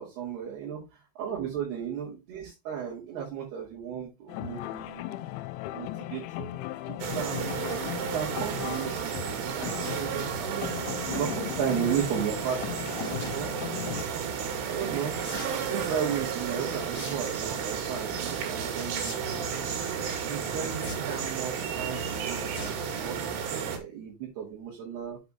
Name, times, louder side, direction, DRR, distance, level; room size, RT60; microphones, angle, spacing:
voice 1, 0.0-5.0 5.7-7.6 8.1-10.7 11.1-13.7 14.0-14.2 14.6-15.2 15.6-19.6 20.2-25.2, right 8 dB, 60° right, -4 dB, 4.2 m, -35 dB
sound 1, 4.3-14.1, left 14 dB, 85° left, 3.1 m, -37 dB
sound 2, 7.0-23.8, right 7 dB, 85° right, 4.7 m, -33 dB
sound 3, 13.0-13.4 15.2-15.6 16.9-17.1 17.5-17.8 19.0-19.1 19.4-19.5 20.8-21.3 22.5-22.8 23.2-23.4 23.8-23.9 24.1-24.2, left 1 dB, 20° left, 3.4 m, -40 dB
8.3 x 6.0 x 4.3 m, 0.25 s
omnidirectional pair, 5.5 m